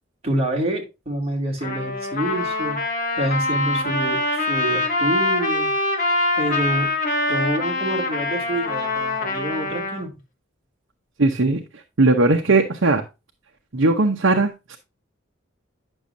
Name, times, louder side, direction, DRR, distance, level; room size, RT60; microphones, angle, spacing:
voice 1, 0.2-2.8 3.2-5.7 6.4-6.9 7.3-10.2, right 1 dB, 30° right, 2.4 m, -27 dB
Trumpet, 1.6-10.0, left 2 dB, 40° left, 1.8 m, -24 dB
voice 2, 11.2-11.6 12.0-13.0 13.7-14.8, right 2 dB, 75° right, 0.9 m, -18 dB
10.0 x 6.3 x 2.6 m
head